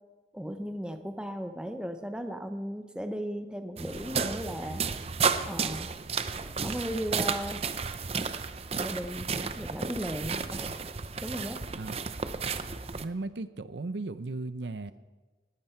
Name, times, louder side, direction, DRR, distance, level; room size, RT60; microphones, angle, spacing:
voice 1, 0.3-4.8 5.5-5.9 6.4-7.6 8.8-10.7 11.2-11.6, equal, 5° right, 7 dB, 0.9 m, -36 dB
sound 1, 3.8-13.0, right 5 dB, 35° right, 0.6 m, -32 dB
voice 2, 12.9-14.9, right 2 dB, 80° right, 13 dB, 0.6 m, -36 dB
19.5 x 15.0 x 4.5 m, 1.3 s
head